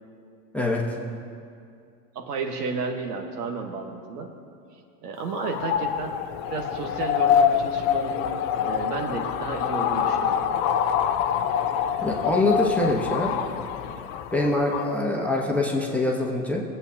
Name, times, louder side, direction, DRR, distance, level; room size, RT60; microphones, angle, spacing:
voice 1, 0.5-1.0 12.0-13.3 14.3-16.6, left 2 dB, 5° left, -2 dB, 1.1 m, -24 dB
voice 2, 2.1-4.3 5.0-6.2 6.5-8.3 8.6-10.6, right 4 dB, 70° right, 3 dB, 1.4 m, -32 dB
sound 1, 5.2-14.9, left 8 dB, 30° left, 0.4 m, -25 dB
18.0 x 8.0 x 2.8 m, 2.4 s
hypercardioid pair, 110°, 49 cm